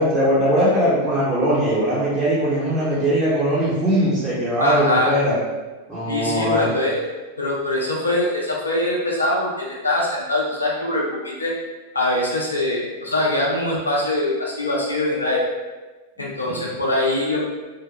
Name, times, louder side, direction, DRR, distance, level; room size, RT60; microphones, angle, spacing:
voice 1, 0.0-5.3 5.9-6.7 16.4-16.6, equal, 15° right, -12 dB, 0.9 m, -20 dB
voice 2, 4.6-5.1 6.1-7.0 7.4-11.5 11.9-15.4 16.2-17.4, left 1 dB, 80° left, -3 dB, 0.5 m, -23 dB
2.7 x 2.1 x 2.2 m, 1.2 s
figure-of-eight pair, 90°, 0 cm